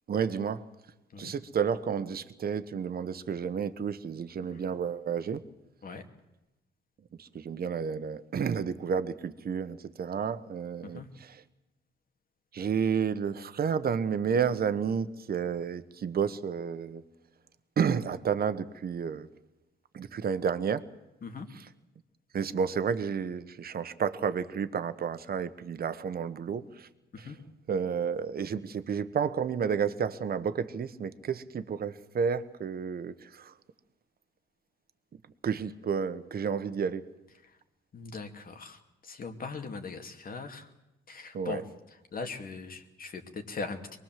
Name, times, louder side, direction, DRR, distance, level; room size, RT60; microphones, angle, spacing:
voice 1, 0.1-0.6 1.2-5.4 7.2-11.4 12.5-17.0 17.8-19.3 19.9-20.9 22.3-26.9 27.2-27.3 27.7-33.5 35.4-37.0 41.3-41.6, right 7 dB, 50° right, 12 dB, 1.4 m, -31 dB
voice 2, 37.9-40.7 41.1-41.6 42.1-44.0, left 4 dB, 45° left, 6 dB, 2.6 m, -40 dB
23.5 x 20.5 x 7.7 m, 0.99 s
cardioid pair, 90°, 20 cm